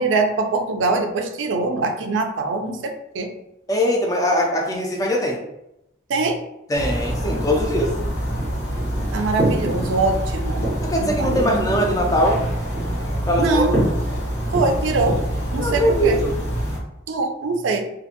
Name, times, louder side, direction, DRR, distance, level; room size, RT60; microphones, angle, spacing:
voice 1, 0.0-3.3 6.1-6.4 7.2-7.5 9.1-10.7 11.0-11.5 13.4-13.8 14.5-15.2 15.5-16.2 17.1-17.8, right 3 dB, 75° right, 4 dB, 0.4 m, -23 dB
voice 2, 3.7-5.4 6.7-7.9 10.8-12.4 13.3-13.7 15.6-16.4, equal, 15° left, 0 dB, 0.3 m, -21 dB
sound 1, 6.7-16.8, right 1 dB, 85° left, 1.0 m, -25 dB
2.4 x 2.1 x 2.8 m, 0.85 s
head